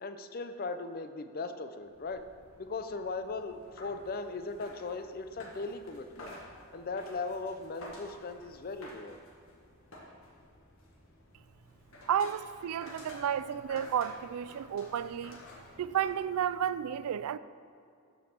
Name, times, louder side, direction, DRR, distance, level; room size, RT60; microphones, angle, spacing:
voice 1, 0.0-2.2 2.6-6.3 6.7-9.2, left 3 dB, 40° left, 0.5 m, -38 dB
sound 1, 1.8-16.7, left 1 dB, 70° left, 1.5 m, -52 dB
voice 2, 12.1-15.4 15.8-17.4, right 9 dB, 80° right, 0.3 m, -32 dB
13.0 x 5.2 x 4.4 m
head